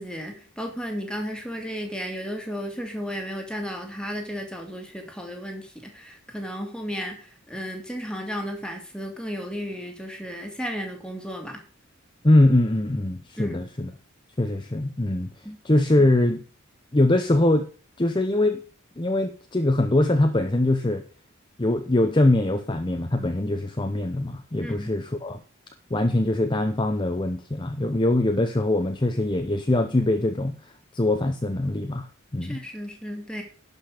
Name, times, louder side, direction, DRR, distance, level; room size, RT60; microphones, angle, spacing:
voice 1, 0.0-11.6 13.4-13.6 15.4-15.6 24.6-24.9 32.4-33.4, equal, 5° left, 2.3 m, -34 dB
voice 2, 12.2-13.9 14.4-15.3 15.6-16.4 16.9-17.7 18.0-18.6 19.0-21.0 21.6-25.4 25.9-30.5 30.9-32.6, left 1 dB, 20° left, 0.7 m, -22 dB
11.5 x 5.4 x 6.6 m
head